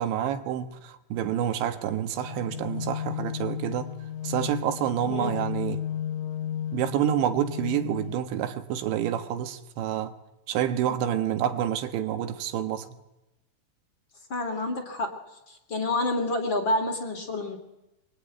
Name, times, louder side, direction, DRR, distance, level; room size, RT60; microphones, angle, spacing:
voice 1, 0.0-4.0 4.2-5.8 6.7-10.1 10.5-13.0, right 10 dB, 70° right, 3.6 m, -28 dB
sound 1, 2.2-8.2, left 10 dB, 85° left, 3.9 m, -34 dB
voice 2, 5.0-5.3 10.8-11.0 14.3-15.1 15.5-17.6, left 2 dB, 30° left, 2.5 m, -28 dB
25.0 x 23.5 x 9.4 m
omnidirectional pair, 5.6 m